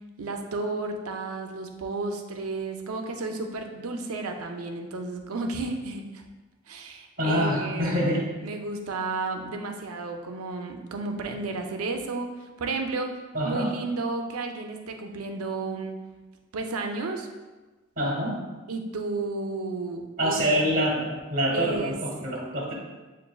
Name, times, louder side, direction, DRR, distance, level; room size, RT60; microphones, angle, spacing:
voice 1, 0.2-6.2 6.7-8.0 8.4-13.1 13.4-16.0 16.5-17.3 18.7-20.7 21.5-22.0 22.3-22.4, right 3 dB, 80° right, 4 dB, 0.5 m, -32 dB
voice 2, 7.2-8.3 13.3-13.7 18.0-18.4 20.2-22.7, equal, 40° right, -2 dB, 0.9 m, -26 dB
6.9 x 2.5 x 2.3 m, 1.2 s
head